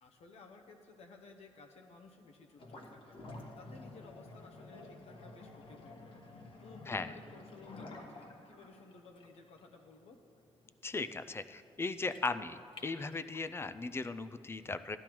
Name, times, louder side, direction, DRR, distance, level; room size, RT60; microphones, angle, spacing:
voice 1, 0.0-3.2 3.5-6.2 6.6-10.2, left 3 dB, 70° left, 3 dB, 0.9 m, -56 dB
sound 1, 2.6-13.6, left 2 dB, 50° left, 1.3 m, -51 dB
voice 2, 6.9-7.2 10.8-15.0, left 3 dB, 20° left, 11 dB, 0.3 m, -37 dB
15.0 x 11.5 x 3.0 m, 2.5 s
cardioid pair, 125°, 11 cm